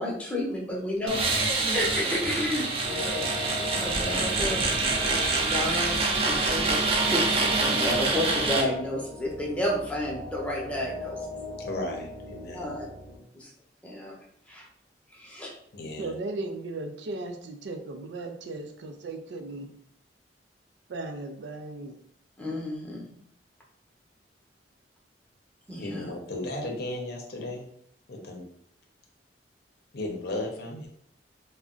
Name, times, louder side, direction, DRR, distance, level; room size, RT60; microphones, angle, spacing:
voice 1, 0.0-3.3 3.6-4.6 5.4-11.3 12.5-12.8 13.3-13.5 13.8-14.1 14.5-14.7 15.1-15.5 22.4-23.1 25.7-26.1, left 1 dB, 5° left, -3 dB, 0.7 m, -31 dB
sound 1, 1.1-8.6, right 3 dB, 35° right, 0.5 m, -26 dB
sound 2, 2.8-13.2, left 1 dB, 50° right, 1.0 m, -40 dB
voice 2, 11.6-12.7 15.7-16.1 25.8-27.7 28.1-28.4 29.9-30.9, left 2 dB, 65° left, 1 dB, 0.6 m, -35 dB
voice 3, 16.0-19.7 20.9-22.0, right 2 dB, 85° right, 5 dB, 0.4 m, -36 dB
2.4 x 2.1 x 3.7 m, 0.68 s
head